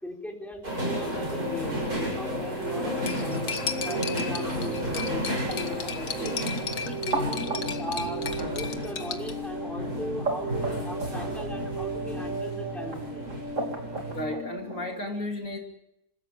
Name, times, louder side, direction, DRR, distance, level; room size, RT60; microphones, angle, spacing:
voice 1, 0.0-6.4 6.8-13.3, equal, ahead, 0 dB, 4.1 m, -39 dB
sound 1, 0.6-14.2, right 1 dB, 90° right, 8.5 m, -33 dB
sound 2, 0.8-15.0, right 1 dB, 55° right, 3.9 m, -35 dB
Cutlery silverware, 3.1-9.3, left 6 dB, 80° left, 1.9 m, -35 dB
voice 2, 14.1-15.6, left 1 dB, 60° left, 1 dB, 3.1 m, -33 dB
27.0 x 16.0 x 7.4 m, 0.83 s
omnidirectional pair, 1.6 m